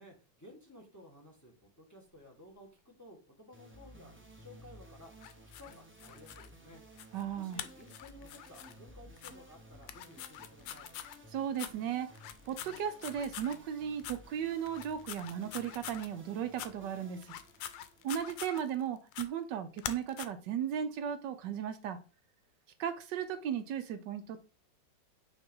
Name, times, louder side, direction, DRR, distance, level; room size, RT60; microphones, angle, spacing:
voice 1, 0.0-6.8 7.3-10.9, left 1 dB, 10° left, -1 dB, 1.3 m, -55 dB
sound 1, 3.5-18.9, right 1 dB, 15° right, 0.4 m, -56 dB
sound 2, 5.2-6.5 7.0-7.2 7.5-8.7 9.2-9.3 9.8-11.2 11.6-11.7 12.1-13.6 14.0-14.2 14.7-16.1 16.5-16.7 17.2-18.8 19.1-19.3 19.8-20.3, left 11 dB, 85° left, 1.3 m, -44 dB
voice 2, 7.1-7.6 11.3-12.1 12.4-17.4 18.0-22.0 22.8-24.4, right 9 dB, 75° right, 10 dB, 1.2 m, -36 dB
6.0 x 3.1 x 5.3 m, 0.33 s
omnidirectional pair, 2.0 m